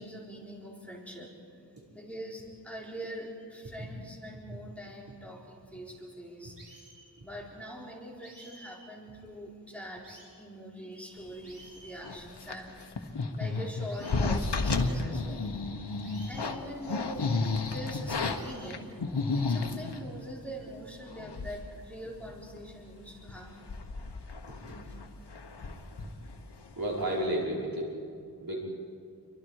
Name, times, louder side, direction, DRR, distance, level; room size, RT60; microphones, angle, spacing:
voice 1, 0.0-1.3 1.9-6.6 7.2-15.5 16.3-17.3 17.6-19.0 19.3-23.6 24.7-24.8, equal, 5° left, -3 dB, 4.2 m, -43 dB
sound 1, 6.6-7.1 8.2-8.7 9.3-9.4 10.0-10.3 10.9-11.0 11.4-11.9 12.4-12.5 12.8-12.9 13.9-14.3 14.7-14.8 16.0-16.5 16.9-17.0 18.3-18.7 19.2-19.4, right 3 dB, 85° right, 7.1 m, -53 dB
sound 2, 12.0-20.0 20.7-20.8 21.1-21.7 22.0-22.1 22.5-22.8 23.2-26.7 27.0-27.3, left 3 dB, 80° left, 1.5 m, -32 dB
voice 2, 26.7-27.9 28.4-28.6, right 1 dB, 60° right, -3 dB, 5.1 m, -31 dB
29.0 x 23.5 x 4.9 m, 2.4 s
wide cardioid pair, 65°, 40 cm